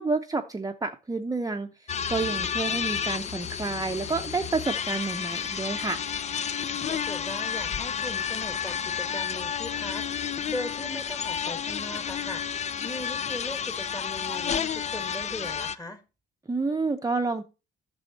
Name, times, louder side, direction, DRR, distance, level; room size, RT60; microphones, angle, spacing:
voice 1, 0.0-1.7 2.1-6.0 16.5-17.4, right 3 dB, 20° right, 0.7 m, -29 dB
sound 1, 1.9-15.8, left 7 dB, 35° left, 0.4 m, -31 dB
voice 2, 6.8-12.5 12.8-16.0, left 1 dB, 20° left, 1.6 m, -39 dB
10.5 x 6.3 x 4.1 m
cardioid pair, 90°, 20 cm